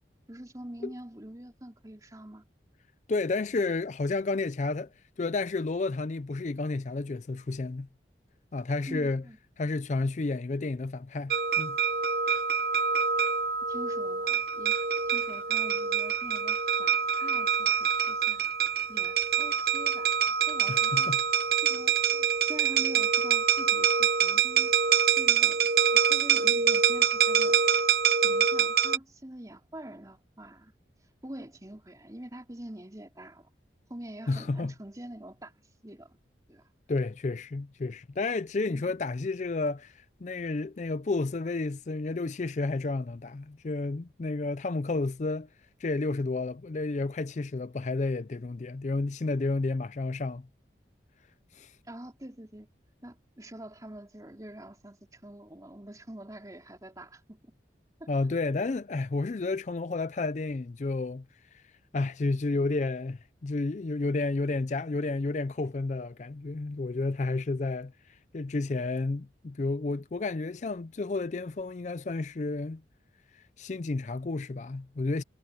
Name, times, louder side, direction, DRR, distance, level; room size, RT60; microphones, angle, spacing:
voice 1, 0.3-2.4 8.9-9.4 13.7-14.8 15.1-18.4 18.9-21.1 21.6-24.7 25.2-27.6 28.0-30.7 31.2-33.5 33.9-35.5 35.8-36.2 36.5-36.7 38.7-38.8 51.9-52.7 53.0-57.4 58.0-58.1, right 1 dB, 20° right, 3.6 m, -45 dB
voice 2, 3.1-4.9 5.2-7.9 8.5-9.2 9.6-11.8 20.7-21.2 34.3-34.7 36.9-45.5 45.8-50.5 51.5-51.7 58.1-61.2 61.5-61.6 61.9-72.8 73.3-75.2, left 3 dB, 40° left, 0.4 m, -31 dB
sound 1, 11.3-29.0, right 7 dB, 55° right, 0.9 m, -25 dB
head